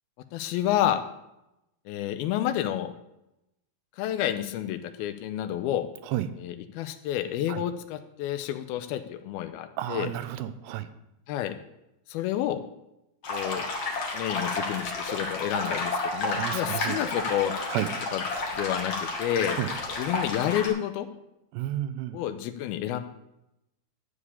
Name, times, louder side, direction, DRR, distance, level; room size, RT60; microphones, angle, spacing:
voice 1, 0.3-1.0 1.9-2.9 4.0-5.9 6.4-10.1 11.3-11.5 12.1-12.6 13.3-13.7 14.1-17.5 18.1-18.3 18.5-19.6 20.0-21.1 22.1-23.0, left 11 dB, 80° left, 10 dB, 2.4 m, -29 dB
voice 2, 9.8-10.9 16.3-17.0 17.7-17.9 19.6-19.7 21.5-22.2, right 13 dB, 85° right, 12 dB, 2.8 m, -31 dB
sound 1, 13.2-20.7, left 3 dB, 45° left, 2.2 m, -31 dB
12.0 x 4.9 x 8.5 m, 0.88 s
omnidirectional pair, 4.7 m